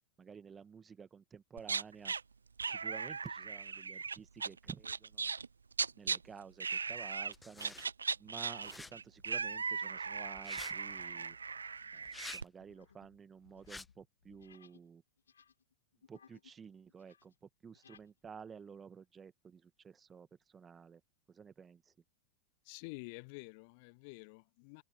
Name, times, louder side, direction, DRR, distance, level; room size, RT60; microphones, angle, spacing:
voice 1, 0.2-2.1 2.7-5.3 5.9-7.8 8.2-11.4 11.9-15.0 16.1-21.0 21.3-21.9, right 6 dB, 20° right, 1.8 m, -52 dB
sound 1, 1.6-2.2 2.6-6.2 6.6-7.3 7.6-12.4, right 5 dB, 75° right, 0.4 m, -38 dB
sound 2, 5.9-6.2 6.7-6.9 7.6-8.0 8.3-14.9 15.2-16.6 16.9-18.1, left 7 dB, 70° left, 5.2 m, -65 dB
sound 3, 7.3-7.9 8.6-8.9 10.3-10.7 12.0-12.4 13.6-13.9, left 3 dB, 10° left, 1.3 m, -48 dB
voice 2, 22.6-24.8, left 31 dB, 45° left, 1.2 m, -49 dB
figure-of-eight pair, 90°, 0 cm